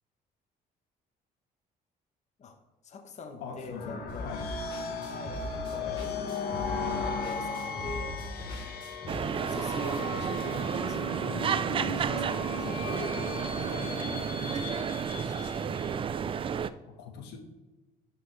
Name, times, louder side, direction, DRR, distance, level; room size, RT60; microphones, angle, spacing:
voice 1, 2.8-4.3 5.1-6.1 6.4-8.6 9.4-15.9, left 3 dB, 45° left, 5 dB, 1.1 m, -44 dB
voice 2, 3.4-4.4 4.8-5.0 16.9-17.4, left 5 dB, 90° left, 4 dB, 1.4 m, -42 dB
sound 1, 3.6-16.1, left 4 dB, 65° left, 1.3 m, -37 dB
sound 2, 4.1-9.1, left 1 dB, 25° left, 2.9 m, -40 dB
sound 3, 9.1-16.7, right 7 dB, 30° right, 0.4 m, -31 dB
11.0 x 5.6 x 3.2 m, 1.1 s
cardioid pair, 110°, 17 cm